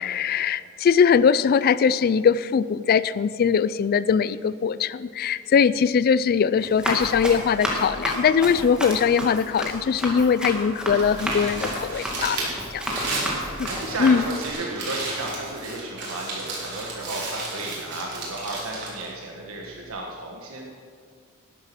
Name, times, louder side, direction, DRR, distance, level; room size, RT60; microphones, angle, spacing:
voice 1, 0.0-12.5 12.7-12.8 13.6-13.7 14.0-14.2, left 6 dB, 45° left, 16 dB, 0.3 m, -21 dB
Run, 6.6-14.5, equal, 5° right, 2.0 m, -31 dB
Crumpling crinkling, 10.9-19.9, right 2 dB, 55° right, 3.8 m, -33 dB
voice 2, 12.9-20.7, right 2 dB, 75° right, -1 dB, 1.5 m, -34 dB
12.0 x 10.5 x 6.1 m, 2.1 s
head